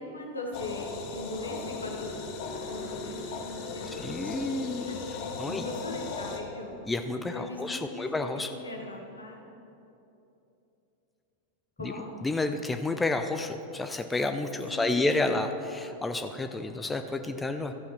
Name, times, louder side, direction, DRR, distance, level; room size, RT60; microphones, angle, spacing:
voice 1, 0.0-2.1 2.7-5.0 5.4-6.7 7.3-8.1 8.3-9.4 11.8-12.1 14.7-15.3, left 2 dB, 80° left, 0 dB, 1.4 m, -39 dB
sound 1, 0.5-6.4, left 4 dB, 45° left, 1.1 m, -37 dB
voice 2, 4.0-5.7 6.9-8.6 11.8-11.9 12.2-17.7, left 2 dB, 10° left, 7 dB, 0.4 m, -30 dB
13.0 x 5.6 x 5.9 m, 2.9 s
figure-of-eight pair, 90°, 0 cm